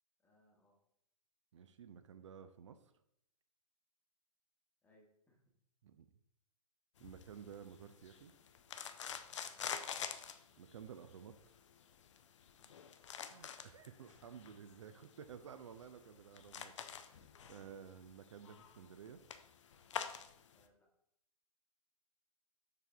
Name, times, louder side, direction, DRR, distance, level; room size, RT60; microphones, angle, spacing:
voice 1, 0.2-0.8 4.8-5.4 9.5-9.8 12.6-12.8 20.5-20.9, left 1 dB, 10° left, 0 dB, 1.1 m, -71 dB
voice 2, 1.5-2.9 5.8-6.1 7.0-8.3 10.6-11.6 13.2-19.2, right 8 dB, 50° right, 10 dB, 0.4 m, -54 dB
sound 1, 7.0-20.6, left 8 dB, 50° left, 0.5 m, -48 dB
6.8 x 4.5 x 3.4 m, 0.75 s
figure-of-eight pair, 120°, 20 cm